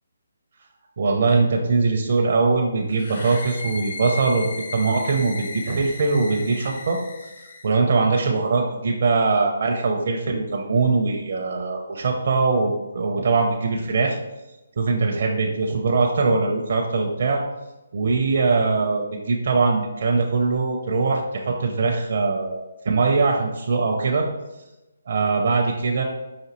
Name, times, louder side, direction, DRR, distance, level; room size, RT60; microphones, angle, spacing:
voice 1, 1.0-7.3 7.6-14.2 14.8-17.4 17.9-24.3 25.1-26.0, right 4 dB, 55° right, 1 dB, 0.5 m, -22 dB
sound 1, 2.9-7.7, left 3 dB, 55° left, 0.5 m, -36 dB
5.0 x 2.6 x 3.0 m, 1.0 s
hypercardioid pair, 155°, 0 cm